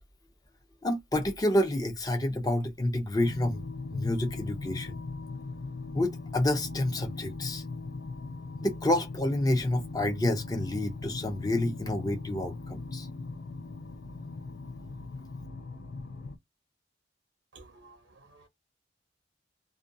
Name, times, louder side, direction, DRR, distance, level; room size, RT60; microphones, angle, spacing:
voice 1, 0.8-3.6 3.9-5.0 5.9-7.6 8.6-13.1, left 1 dB, 20° left, 0.6 m, -29 dB
sound 1, 3.2-16.4, left 3 dB, 70° left, 0.4 m, -39 dB
voice 2, 17.5-18.5, right 3 dB, 90° right, 0.8 m, -54 dB
2.5 x 2.3 x 2.6 m
head